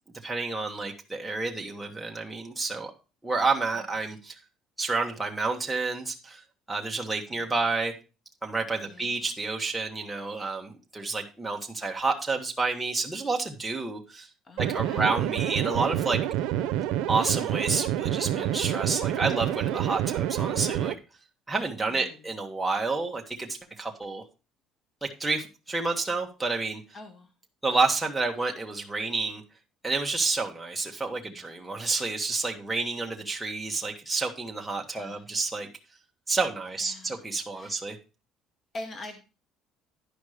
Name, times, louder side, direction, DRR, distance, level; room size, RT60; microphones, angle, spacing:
voice 1, 0.2-2.9 3.2-4.4 4.8-6.4 6.7-7.9 8.4-14.3 14.6-16.3 17.1-21.0 21.5-24.2 25.0-26.8 27.6-29.4 29.8-35.7 36.3-38.0, right 3 dB, 5° right, 1.2 m, -29 dB
voice 2, 8.8-9.2 14.4-15.1 21.9-22.2 26.9-27.3 34.9-35.2 36.8-37.2 37.5-37.8 38.7-39.2, left 2 dB, 25° left, 1.0 m, -43 dB
sound 1, 14.6-20.9, right 12 dB, 85° right, 0.6 m, -28 dB
11.0 x 5.2 x 4.9 m
cardioid pair, 175°, 0 cm